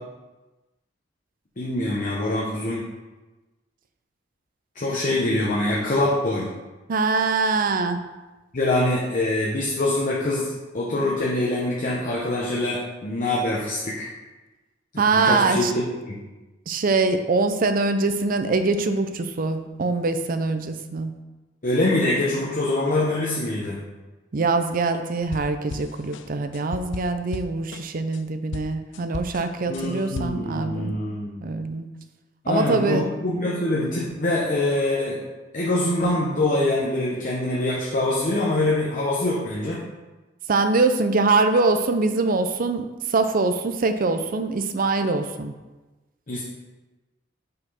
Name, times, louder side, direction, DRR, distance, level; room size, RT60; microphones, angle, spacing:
voice 1, 1.6-2.8 4.7-6.5 8.5-14.1 14.9-16.2 21.6-23.8 29.7-31.4 32.4-35.2 35.5-39.8 46.3-46.4, left 2 dB, 45° left, -5 dB, 0.9 m, -24 dB
voice 2, 6.9-8.0 15.0-15.7 16.7-21.1 24.3-31.0 31.4-31.9 32.5-33.1 40.5-45.5, right 3 dB, 45° right, 8 dB, 0.5 m, -23 dB
sound 1, 25.2-28.2 28.5-30.5, left 4 dB, 70° left, 0.4 m, -36 dB
5.4 x 4.3 x 5.6 m, 1.2 s
head